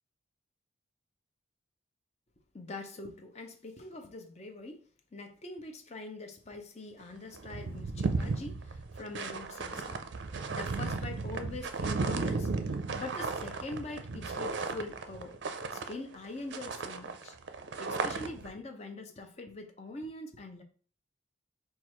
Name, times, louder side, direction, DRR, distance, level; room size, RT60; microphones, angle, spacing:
voice 1, 2.5-4.8 5.1-15.4 15.7-17.3 17.8-20.6, left 2 dB, 35° left, 4 dB, 0.6 m, -43 dB
sound 1, 7.0-7.1 7.3-16.3 16.5-18.5, right 4 dB, 60° right, 0.4 m, -35 dB
4.4 x 2.4 x 4.4 m, 0.42 s
head